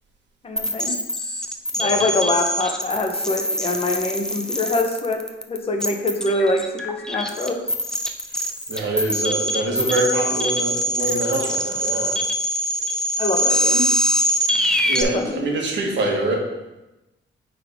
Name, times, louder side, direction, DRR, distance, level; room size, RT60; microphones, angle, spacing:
voice 1, 0.4-0.9 1.8-5.2 5.5-7.6 13.2-13.9 15.1-15.4, left 2 dB, 30° left, 3 dB, 0.9 m, -24 dB
sound 1, 0.6-15.0, equal, 5° left, 0.5 m, -23 dB
voice 2, 8.7-12.2 14.8-16.4, right 2 dB, 65° right, 0 dB, 1.5 m, -24 dB
8.7 x 3.8 x 3.6 m, 1.0 s
cardioid pair, 130°, 20 cm